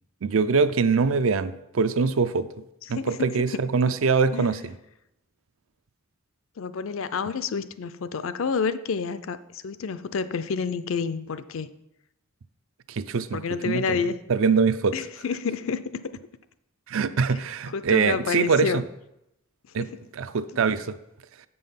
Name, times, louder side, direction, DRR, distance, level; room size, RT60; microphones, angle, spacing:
voice 1, 0.2-2.5 2.9-4.7 12.9-14.0 14.3-14.9 16.9-18.8 19.7-19.9 20.1-21.0, right 5 dB, 70° right, 13 dB, 0.5 m, -23 dB
voice 2, 6.6-11.7 13.3-14.2 14.9-15.8 17.7-18.8 19.8-20.0, left 5 dB, 70° left, 14 dB, 0.4 m, -29 dB
7.7 x 5.5 x 5.7 m, 0.85 s
head